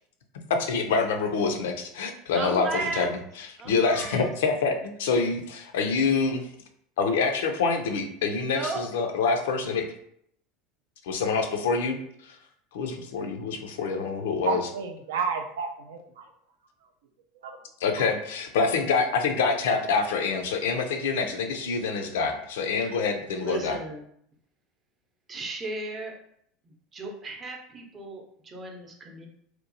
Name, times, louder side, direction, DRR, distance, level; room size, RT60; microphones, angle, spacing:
voice 1, 0.5-6.5 7.0-9.9 11.0-12.4 12.7-14.7 17.8-23.8, left 4 dB, 70° left, 5 dB, 0.4 m, -26 dB
voice 2, 2.3-3.1 3.6-4.3 8.4-8.8 22.8-22.9 23.4-24.0 25.3-26.1 26.6-29.3, right 3 dB, 30° right, 1 dB, 0.6 m, -35 dB
voice 3, 14.5-16.2 17.4-17.6 18.0-18.1, right 5 dB, 70° right, 5 dB, 0.3 m, -31 dB
2.8 x 2.1 x 2.6 m, 0.69 s
figure-of-eight pair, 75°, 0 cm